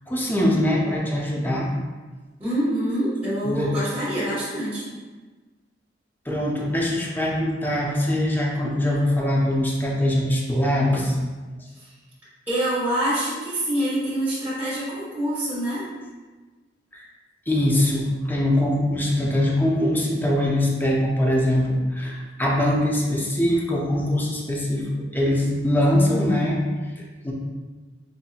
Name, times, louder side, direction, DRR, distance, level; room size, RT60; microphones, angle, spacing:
voice 1, 0.1-1.7 3.4-3.7 6.3-11.1 16.9-17.1 17.5-26.6 27.0-27.3, left 1 dB, 10° left, -2 dB, 0.5 m, -22 dB
voice 2, 2.4-4.9 11.7-11.9 12.5-15.8, right 1 dB, 10° right, -13 dB, 1.3 m, -25 dB
5.4 x 2.6 x 2.4 m, 1.3 s
head